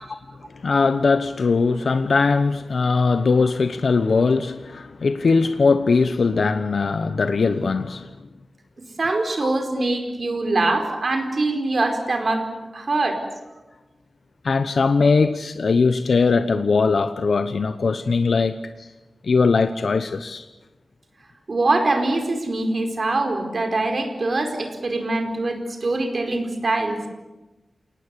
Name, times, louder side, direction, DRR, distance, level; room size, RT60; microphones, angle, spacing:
voice 1, 0.5-8.1 9.4-9.5 10.6-10.8 14.4-18.9 19.2-20.4, left 4 dB, 75° left, 10 dB, 1.0 m, -20 dB
voice 2, 9.0-12.5 12.7-13.2 21.5-27.0, right 2 dB, 55° right, 4 dB, 4.6 m, -23 dB
29.5 x 19.0 x 8.4 m, 1.1 s
wide cardioid pair, 105°, 0 cm